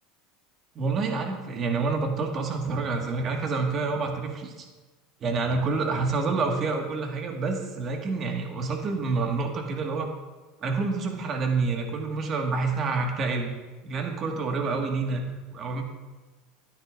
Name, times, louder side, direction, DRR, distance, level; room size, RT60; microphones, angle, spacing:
voice 1, 0.8-4.7 5.2-10.1 10.6-13.5 13.8-15.8, right 4 dB, 40° right, 2 dB, 1.7 m, -28 dB
12.5 x 9.5 x 2.5 m, 1.2 s
supercardioid pair, 105°, 0 cm